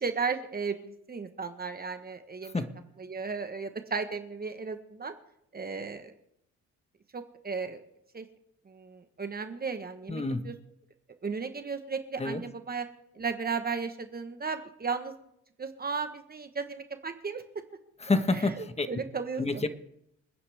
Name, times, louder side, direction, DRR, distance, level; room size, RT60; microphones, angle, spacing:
voice 1, 0.0-2.6 3.0-5.1 5.5-6.1 7.1-7.8 8.1-8.3 8.7-10.5 11.2-12.8 13.1-15.1 15.6-17.4 18.6-19.6, right 5 dB, 30° right, 7 dB, 1.3 m, -35 dB
voice 2, 10.1-10.5 12.2-12.4 18.0-18.9 19.4-19.7, left 3 dB, 20° left, 9 dB, 1.4 m, -28 dB
27.5 x 9.7 x 3.5 m, 0.76 s
cardioid pair, 90°, 30 cm